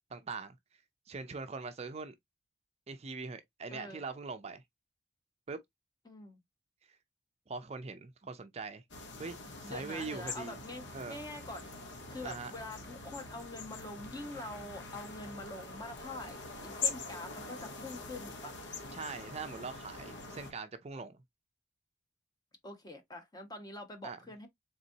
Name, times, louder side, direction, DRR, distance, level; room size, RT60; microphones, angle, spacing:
voice 1, 0.1-0.6 1.1-2.1 2.9-4.6 5.5-5.6 7.5-8.8 9.2-10.6 10.9-11.2 12.2-12.5 18.9-21.2 24.0-24.2, right 4 dB, 35° right, 0.5 m, -42 dB
voice 2, 3.7-4.0 6.0-6.4 9.6-11.7 12.1-18.6 22.6-24.5, left 2 dB, 20° left, 1.0 m, -45 dB
sound 1, 8.9-20.5, left 4 dB, 75° left, 1.2 m, -43 dB
4.0 x 3.6 x 2.6 m
head